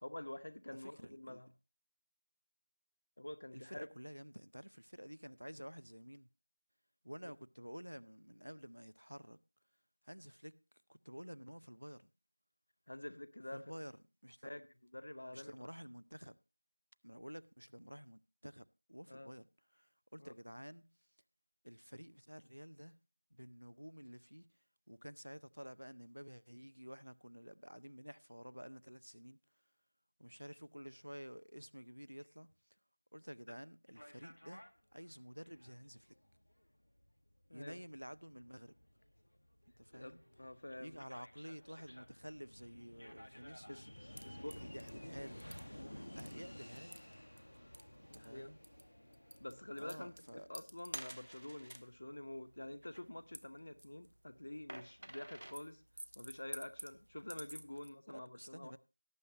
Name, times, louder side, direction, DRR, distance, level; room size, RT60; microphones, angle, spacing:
voice 1, 0.0-1.5 3.2-3.9 12.9-13.6 14.4-14.6 14.9-15.5 19.1-19.3 20.2-20.3 37.5-37.8 39.9-41.0 43.7-44.7 45.8-46.1 48.1-48.5 49.4-55.8 56.2-58.8, left 1 dB, 40° left, 1.0 m, -48 dB
voice 2, 0.8-1.4 3.5-6.3 7.0-9.4 10.0-10.6 10.9-12.1 13.5-13.9 14.2-14.5 15.3-16.4 17.0-19.5 19.7-20.9 21.6-23.0 23.3-24.5 24.9-29.4 30.2-32.5 33.1-34.7 34.9-36.1 37.5-38.8 39.8-40.2 40.8-43.9 44.4-45.5 46.2-47.0 48.0-48.6 49.8-50.5 58.1-58.8, equal, 90° right, 0.6 m, -51 dB
sound 1, 33.9-50.4, equal, 60° left, 1.5 m, -55 dB
sound 2, 44.2-57.9, right 1 dB, 50° right, 0.7 m, -53 dB
18.0 x 7.9 x 2.8 m
figure-of-eight pair, 175°, 0 cm